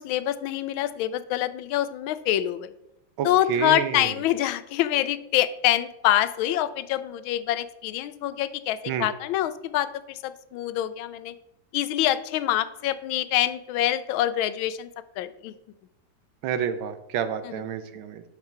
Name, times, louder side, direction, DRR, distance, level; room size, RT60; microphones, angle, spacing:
voice 1, 0.0-2.7 3.2-11.3 11.7-14.9 15.2-15.5 17.4-17.6, left 13 dB, 90° left, 14 dB, 1.4 m, -26 dB
voice 2, 3.2-4.1 8.9-9.1 16.4-18.2, right 8 dB, 90° right, 11 dB, 1.6 m, -29 dB
11.0 x 5.7 x 4.5 m, 0.86 s
omnidirectional pair, 2.1 m